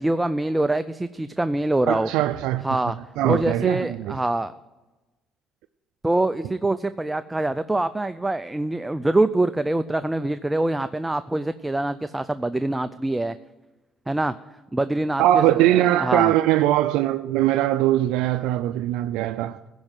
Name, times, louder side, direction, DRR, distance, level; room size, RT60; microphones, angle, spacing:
voice 1, 0.0-2.1 2.6-3.0 3.2-4.5 6.0-13.4 14.1-14.3 14.7-16.3, right 2 dB, 10° right, 0.4 m, -24 dB
voice 2, 1.9-2.8 3.2-4.2 15.2-19.6, right 13 dB, 90° right, 0.4 m, -21 dB
16.0 x 5.4 x 9.0 m
cardioid pair, 105°, 0 cm